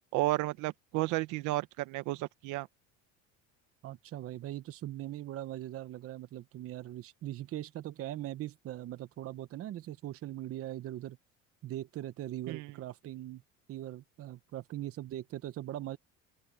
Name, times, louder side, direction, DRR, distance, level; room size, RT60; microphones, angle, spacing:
voice 1, 0.1-2.7 12.5-12.7, right 19 dB, 75° right, 1.2 m, -32 dB
voice 2, 3.8-11.2 11.6-13.4 13.7-16.0, right 13 dB, 50° right, 1.0 m, -40 dB
open air
cardioid pair, 115°, 30 cm